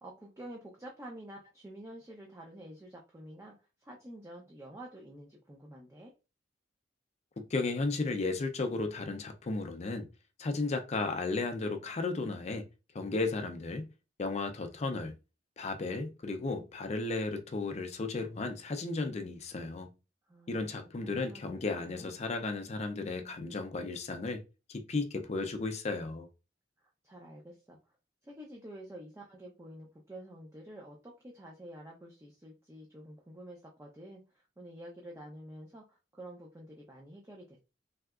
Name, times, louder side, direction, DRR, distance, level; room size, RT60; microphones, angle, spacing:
voice 1, 0.0-6.1 20.3-21.4 21.8-22.3 26.8-27.8 28.2-37.6, right 1 dB, 15° right, 0.5 m, -49 dB
voice 2, 7.4-10.1 10.4-12.7 12.9-13.9 14.2-15.2 15.6-19.9 20.5-24.4 24.7-26.3, left 3 dB, 40° left, 0.4 m, -34 dB
3.3 x 2.7 x 2.4 m
head